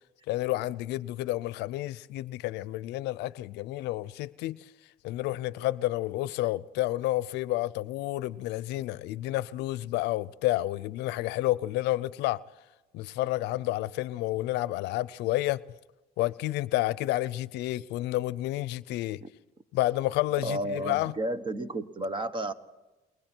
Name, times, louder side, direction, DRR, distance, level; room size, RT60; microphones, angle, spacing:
voice 1, 0.3-4.7 5.0-12.4 12.9-15.6 16.2-19.2 19.7-21.1, left 16 dB, 90° left, 0.6 m, -30 dB
voice 2, 20.4-22.5, right 1 dB, 30° right, 1.3 m, -32 dB
28.0 x 22.0 x 4.5 m
cardioid pair, 110°, 17 cm